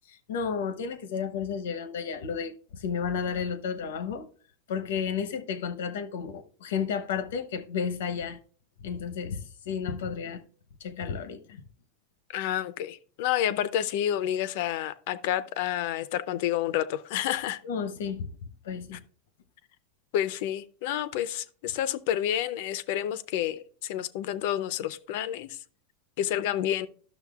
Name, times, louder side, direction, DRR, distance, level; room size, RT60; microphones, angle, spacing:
voice 1, 0.1-4.3 4.7-8.4 8.8-10.4 10.8-11.6 17.6-18.3 18.6-19.0, left 6 dB, 80° left, 0.9 m, -32 dB
voice 2, 12.3-17.6 20.1-25.5 26.2-26.9, left 11 dB, 60° left, 0.5 m, -29 dB
12.0 x 6.4 x 2.4 m
supercardioid pair, 145°, 0 cm